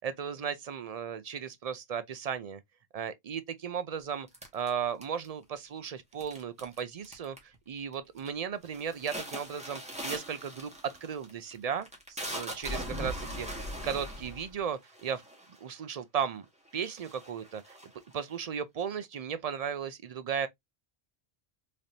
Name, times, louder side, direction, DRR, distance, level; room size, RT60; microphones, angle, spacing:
voice 1, 0.0-2.6 2.9-4.3 4.5-13.5 13.8-15.2 15.6-16.5 16.7-17.8 18.1-20.5, right 7 dB, 55° right, 0.4 m, -35 dB
sound 1, 4.3-5.4 6.2-6.8 7.0-7.6 7.9-8.3 8.7-15.7 16.4-16.5 16.8-18.4, equal, 5° right, 1.3 m, -40 dB
3.9 x 3.2 x 2.7 m
omnidirectional pair, 1.1 m